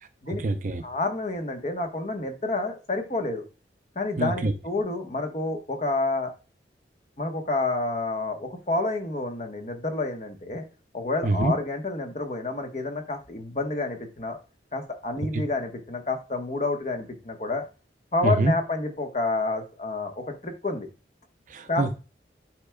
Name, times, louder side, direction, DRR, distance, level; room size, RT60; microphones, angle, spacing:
voice 1, 0.3-0.8 4.2-4.5 11.2-11.5 15.3-15.4 18.2-18.5 21.5-21.9, right 2 dB, 45° right, 9 dB, 0.5 m, -25 dB
voice 2, 0.8-3.4 3.9-6.3 7.2-10.6 10.9-14.4 14.7-17.6 18.1-20.9 21.7-21.9, left 2 dB, 40° left, 4 dB, 1.1 m, -29 dB
9.8 x 4.6 x 2.2 m, 0.32 s
head